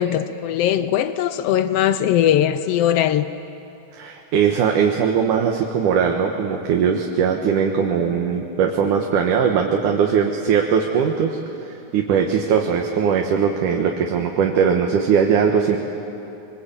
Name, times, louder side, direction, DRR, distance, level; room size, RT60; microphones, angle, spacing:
voice 1, 0.0-3.3, left 10 dB, 80° left, 12 dB, 1.3 m, -20 dB
voice 2, 3.9-15.8, right 7 dB, 80° right, 2 dB, 2.9 m, -20 dB
25.5 x 23.5 x 8.7 m, 2.8 s
omnidirectional pair, 3.6 m